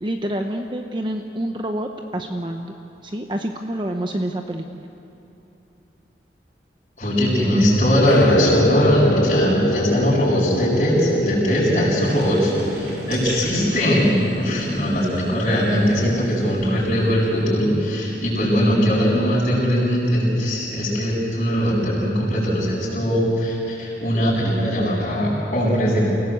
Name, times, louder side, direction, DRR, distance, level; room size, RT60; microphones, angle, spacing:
voice 1, 0.0-2.7 3.0-4.9, right 1 dB, 25° right, 4 dB, 0.9 m, -27 dB
voice 2, 7.0-26.0, equal, 40° left, -12 dB, 7.5 m, -20 dB
sound 1, 8.0-14.2, left 1 dB, 65° left, 1.6 m, -24 dB
sound 2, 12.0-17.4 17.7-19.4, right 1 dB, 65° right, 4.0 m, -38 dB
29.0 x 18.0 x 8.2 m, 2.8 s
head